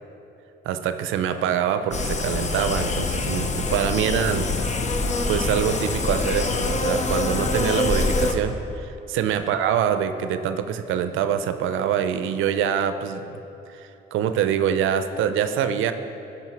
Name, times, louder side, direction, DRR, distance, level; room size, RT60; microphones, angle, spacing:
voice 1, 0.6-4.5 5.3-13.2 13.7-15.9, right 8 dB, 85° right, 10 dB, 0.5 m, -25 dB
sound 1, 1.9-8.3, left 3 dB, 35° left, 0.7 m, -25 dB
12.0 x 5.6 x 4.6 m, 2.9 s
cardioid pair, 90°, 20 cm